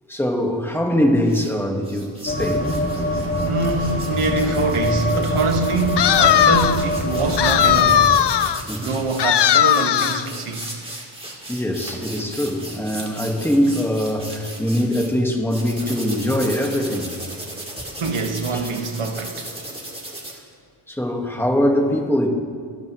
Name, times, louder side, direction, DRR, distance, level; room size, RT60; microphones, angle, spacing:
voice 1, 0.1-2.7 8.7-9.0 11.5-17.1 20.9-22.3, equal, 5° left, 1.6 m, -22 dB
sound 1, 1.2-1.5 1.8-15.1 15.5-20.3, right 1 dB, 10° right, 2.2 m, -36 dB
sound 2, 2.3-8.1, left 1 dB, 25° left, 2.0 m, -24 dB
voice 2, 3.4-8.0 8.8-10.7 18.0-19.5, right 3 dB, 85° right, 1.7 m, -24 dB
sound 3, 6.0-6.9 7.4-8.6 9.2-10.3, left 10 dB, 55° left, 0.5 m, -17 dB
24.5 x 12.5 x 3.1 m
wide cardioid pair, 145°, 50 cm